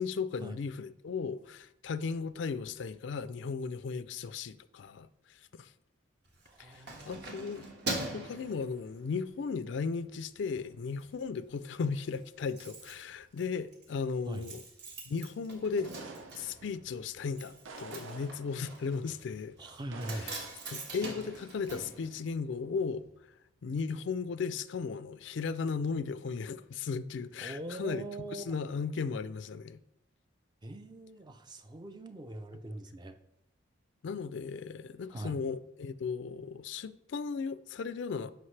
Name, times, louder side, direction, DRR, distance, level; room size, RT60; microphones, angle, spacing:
voice 1, 0.0-5.7 6.6-7.7 8.1-14.6 15.1-15.9 16.3-19.6 20.1-20.4 20.7-23.1 23.6-28.1 28.3-29.8 34.0-38.3, left 5 dB, 65° left, 0.4 m, -36 dB
Keys jangling, 6.3-9.3 9.8-10.0 10.4-11.1 11.3-11.4 11.7-11.8 12.0-22.8 23.1-23.2, right 2 dB, 60° right, 1.5 m, -43 dB
voice 2, 6.5-7.3 14.3-14.5 19.6-20.3 27.4-28.6 30.6-33.2 35.1-35.3, right 1 dB, 20° right, 0.5 m, -42 dB
sound 1, 15.9-16.8 17.6-18.7 19.9-20.6 21.0-21.4, right 3 dB, 90° right, 0.7 m, -49 dB
11.5 x 5.0 x 3.3 m
head